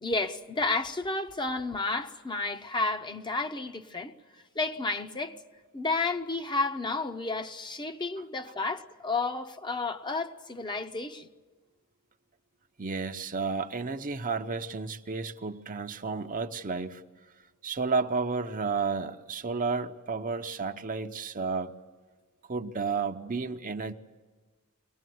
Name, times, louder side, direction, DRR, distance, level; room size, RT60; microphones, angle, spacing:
voice 1, 0.0-4.1 4.5-5.4 5.7-11.3, left 3 dB, 20° left, 0.8 m, -31 dB
voice 2, 12.8-17.0 17.6-21.7 22.5-23.9, right 4 dB, 40° right, 0.8 m, -32 dB
23.0 x 19.0 x 9.3 m
head